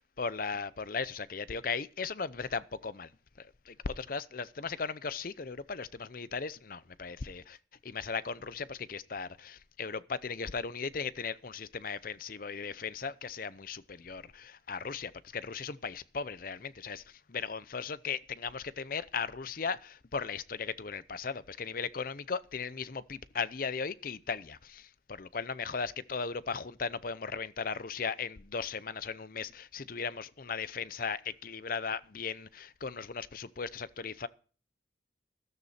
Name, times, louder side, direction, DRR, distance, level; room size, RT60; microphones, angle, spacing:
voice 1, 0.0-3.1 3.4-7.6 7.8-34.3, left 5 dB, 50° left, 0.6 m, -37 dB
13.5 x 13.0 x 4.3 m
head